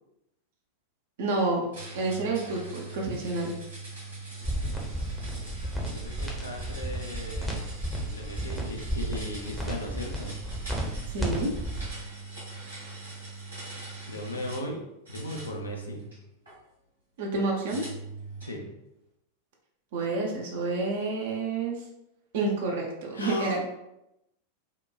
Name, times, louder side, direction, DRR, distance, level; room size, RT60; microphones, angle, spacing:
voice 1, 1.2-1.6 1.9-3.5 11.1-11.5 17.2-17.8 19.9-21.8 22.3-23.7, right 3 dB, 55° right, -1 dB, 0.5 m, -29 dB
sound 1, 1.7-14.7 15.1-16.6 17.7-18.6, right 3 dB, 80° right, 1.2 m, -42 dB
sound 2, 4.4-11.8, right 1 dB, 5° left, 0.6 m, -33 dB
voice 2, 5.9-7.6 8.0-10.4 14.1-14.8 15.1-16.1 18.4-18.7 23.1-23.7, left 1 dB, 75° left, 1 dB, 0.5 m, -37 dB
2.9 x 2.1 x 2.2 m, 0.86 s
figure-of-eight pair, 90°, 0 cm